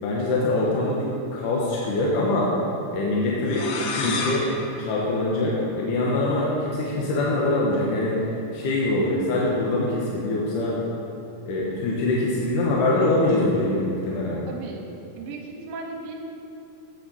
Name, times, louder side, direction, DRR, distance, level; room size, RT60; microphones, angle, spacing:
voice 1, 0.0-2.5 2.9-4.5 4.8-8.2 8.5-10.8 11.5-14.4, left 2 dB, 70° left, -4 dB, 2.2 m, -24 dB
sound 1, 3.5-6.1, left 4 dB, 90° left, 2.8 m, -32 dB
voice 2, 14.5-14.9 15.2-16.1, right 3 dB, 70° right, 1 dB, 2.4 m, -36 dB
7.9 x 7.5 x 5.5 m, 2.8 s
omnidirectional pair, 4.5 m